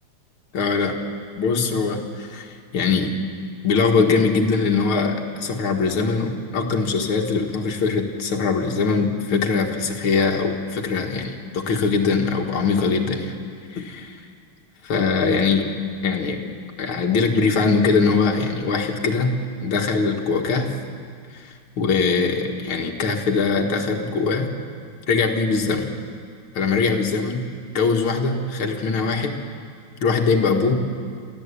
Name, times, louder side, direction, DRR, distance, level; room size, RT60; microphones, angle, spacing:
voice 1, 0.5-1.0 1.4-3.1 3.6-13.3 13.7-14.0 14.8-15.7 16.0-16.5 16.8-19.3 19.6-20.8 21.8-24.5 25.1-25.9 26.5-27.4 27.7-29.4 30.0-30.7, left 4 dB, 75° left, 1 dB, 2.5 m, -22 dB
28.0 x 14.0 x 8.3 m, 2.1 s
omnidirectional pair, 2.3 m